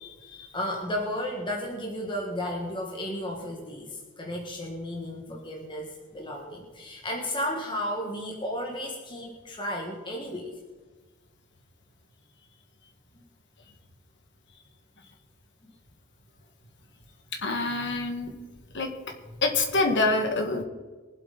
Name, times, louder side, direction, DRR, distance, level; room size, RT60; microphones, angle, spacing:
voice 1, 0.5-10.6, left 1 dB, 20° left, -1 dB, 1.8 m, -33 dB
voice 2, 17.4-18.3 18.7-18.9 19.4-20.6, left 3 dB, 55° left, 4 dB, 2.0 m, -26 dB
23.5 x 8.1 x 4.2 m, 1.3 s
head